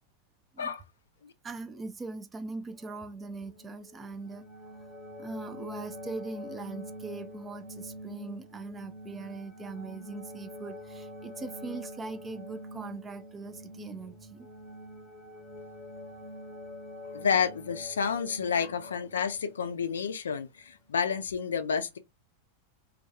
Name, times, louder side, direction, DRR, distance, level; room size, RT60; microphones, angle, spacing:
voice 1, 1.4-4.5 5.2-14.5, right 3 dB, 20° right, 0.3 m, -41 dB
sound 1, 2.7-20.0 21.1-21.2, left 1 dB, ahead, 0.8 m, -45 dB
voice 2, 17.0-22.0, left 6 dB, 70° left, 0.3 m, -30 dB
2.3 x 2.2 x 2.6 m
figure-of-eight pair, 90°, 0 cm